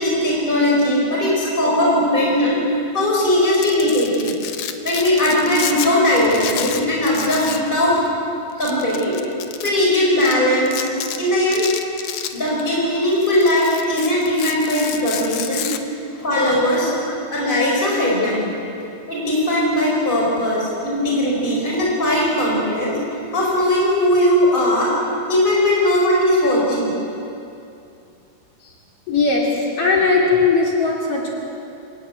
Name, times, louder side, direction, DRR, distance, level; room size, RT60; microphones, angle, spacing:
voice 1, 0.0-2.6 2.9-4.3 4.8-8.0 8.6-9.2 9.6-10.8 11.2-11.7 12.3-15.7 16.1-16.9 17.3-18.5 19.1-23.0 23.3-24.9 25.3-26.9, left 1 dB, 15° left, -4 dB, 5.1 m, -19 dB
Domestic sounds home sounds, 3.4-5.9 6.2-7.7 8.0-8.1 8.6-9.7 10.2-10.3 10.7-11.2 11.5-12.8 13.1-15.8, left 10 dB, 85° left, 2.5 m, -30 dB
voice 2, 29.1-31.3, left 4 dB, 50° left, -2 dB, 3.5 m, -19 dB
26.5 x 15.5 x 9.4 m, 2.7 s
omnidirectional pair, 3.4 m